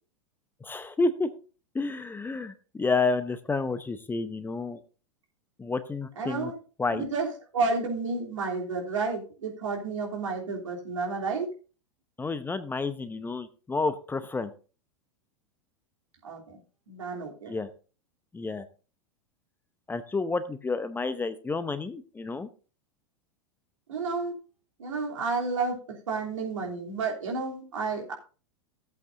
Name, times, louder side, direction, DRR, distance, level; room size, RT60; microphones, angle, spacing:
voice 1, 0.6-1.3 1.7-4.8 5.6-6.5 6.8-7.1 12.2-14.5 17.5-17.7 18.3-18.6 19.9-22.5, left 3 dB, 10° left, 12 dB, 0.8 m, -30 dB
voice 2, 6.2-6.6 6.9-11.5 16.2-16.6 16.9-17.5 23.9-24.3 24.8-28.1, right 4 dB, 75° right, -1 dB, 3.1 m, -31 dB
15.5 x 8.2 x 2.6 m, 0.36 s
hypercardioid pair, 95°, 16 cm